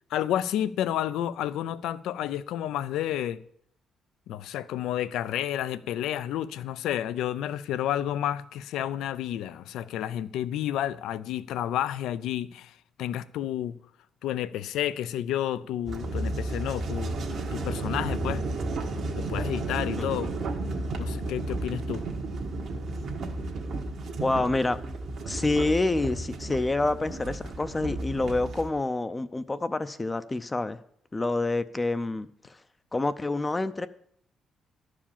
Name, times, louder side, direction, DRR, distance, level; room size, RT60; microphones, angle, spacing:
voice 1, 0.1-3.4 4.3-12.7 13.0-13.8 14.2-18.4 19.1-20.3 21.0-22.0, left 11 dB, 85° left, 0.4 m, -30 dB
sound 1, 15.9-28.7, right 2 dB, 70° right, 1.4 m, -33 dB
voice 2, 24.2-24.8 25.2-30.8 31.1-32.6 32.9-33.9, left 2 dB, 20° left, 0.5 m, -27 dB
11.5 x 4.9 x 7.2 m
cardioid pair, 90°, 0 cm